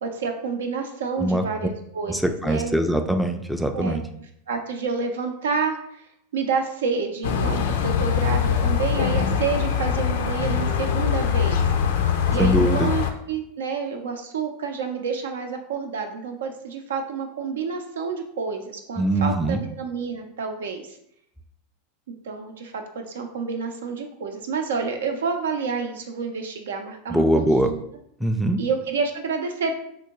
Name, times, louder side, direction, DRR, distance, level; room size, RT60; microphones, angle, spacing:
voice 1, 0.0-2.8 3.7-4.0 4.5-6.0 6.3-11.6 12.3-21.0 22.2-27.8 28.6-29.7, right 5 dB, 90° right, 4 dB, 0.5 m, -29 dB
voice 2, 2.1-4.0 12.4-12.9 19.0-19.6 27.1-27.7 28.2-28.6, right 1 dB, ahead, 6 dB, 0.3 m, -22 dB
sound 1, 7.2-13.1, left 7 dB, 75° left, 0.4 m, -22 dB
3.5 x 2.6 x 2.9 m, 0.73 s
hypercardioid pair, 115°, 0 cm